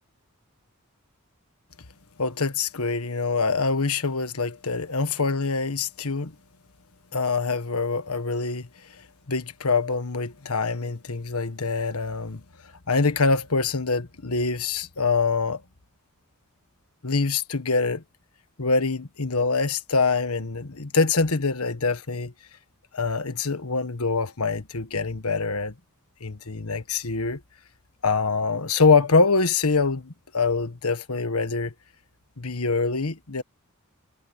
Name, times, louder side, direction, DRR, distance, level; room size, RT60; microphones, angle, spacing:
voice 1, 2.2-6.3 7.1-8.7 9.3-12.4 12.9-15.6 17.0-18.0 18.6-22.3 22.9-25.7 26.2-27.4 28.0-31.7 32.4-33.4, left 4 dB, 85° left, 1.5 m, -24 dB
head